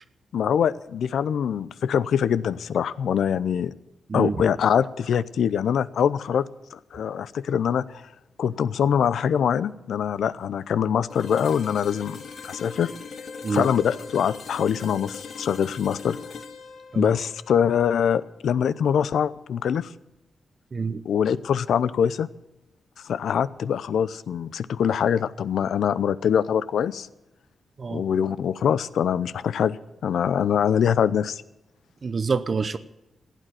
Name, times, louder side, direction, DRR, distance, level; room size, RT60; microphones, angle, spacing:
voice 1, 0.3-3.7 4.1-6.4 6.7-8.0 8.4-12.9 13.5-16.2 17.0-19.9 21.1-22.3 23.0-27.1 27.9-29.8 30.0-31.4, left 8 dB, 85° left, 16 dB, 0.6 m, -24 dB
sound 1, 11.1-18.9, left 5 dB, 65° left, 1.3 m, -41 dB
voice 2, 20.7-21.1 27.8-28.0 32.0-32.8, right 4 dB, 45° right, 12 dB, 0.7 m, -26 dB
15.5 x 9.1 x 9.2 m, 0.94 s
cardioid pair, 90°, 0 cm